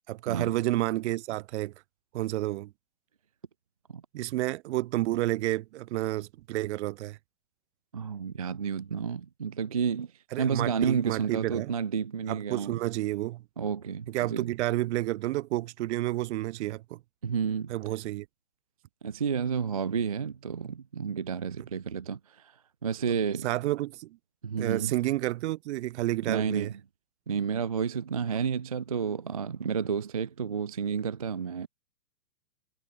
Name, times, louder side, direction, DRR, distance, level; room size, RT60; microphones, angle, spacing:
voice 1, 0.1-1.7 2.1-2.7 4.1-7.2 10.3-11.7 12.3-13.4 14.1-17.0 17.7-18.2 23.4-24.1 24.6-26.7, right 16 dB, 45° right, 1.7 m, -30 dB
voice 2, 7.9-10.1 10.4-12.8 13.6-14.5 17.2-17.7 19.0-22.5 22.8-23.5 24.4-24.9 26.3-26.8 27.3-31.7, right 6 dB, 25° right, 0.3 m, -31 dB
hypercardioid pair, 160°, 47 cm